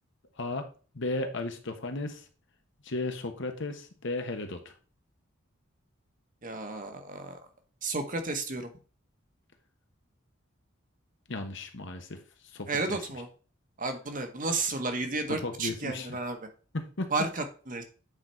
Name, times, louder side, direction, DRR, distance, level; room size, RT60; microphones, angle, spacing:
voice 1, 0.9-2.2 2.8-4.7 11.3-12.2 12.5-13.0 15.3-16.2 16.7-17.1, left 2 dB, 65° left, 6 dB, 1.2 m, -35 dB
voice 2, 6.4-7.4 7.8-8.7 12.7-13.3 13.8-16.4 17.1-17.8, right 3 dB, 40° right, 6 dB, 1.2 m, -32 dB
8.6 x 4.0 x 4.4 m, 0.38 s
head